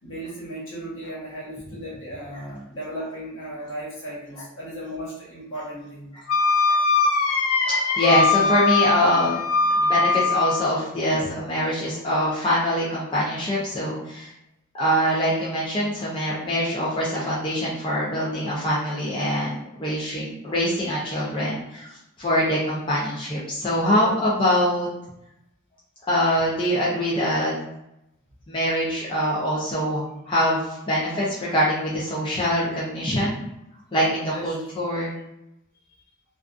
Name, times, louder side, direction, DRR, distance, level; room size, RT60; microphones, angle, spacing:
voice 1, 0.0-6.1 11.1-11.2 34.3-34.5, right 1 dB, 65° left, -7 dB, 1.1 m, -36 dB
Wind instrument woodwind instrument, 6.3-10.7, left 4 dB, 90° left, 0.4 m, -21 dB
voice 2, 7.6-9.4 9.8-14.3 14.7-21.9 22.2-24.9 26.1-27.5 28.5-33.4 33.9-35.1, equal, 25° left, -8 dB, 0.4 m, -24 dB
2.4 x 2.3 x 2.4 m, 0.84 s
head